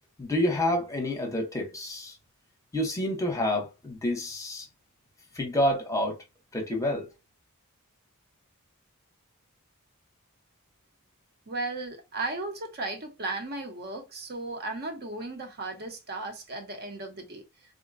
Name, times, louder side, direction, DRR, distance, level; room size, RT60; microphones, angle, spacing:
voice 1, 0.2-2.2 2.7-4.7 5.3-6.2 6.5-7.1, left 1 dB, 15° left, 0.8 m, -28 dB
voice 2, 11.5-17.4, right 2 dB, 45° right, 0.8 m, -35 dB
3.6 x 2.1 x 2.5 m
head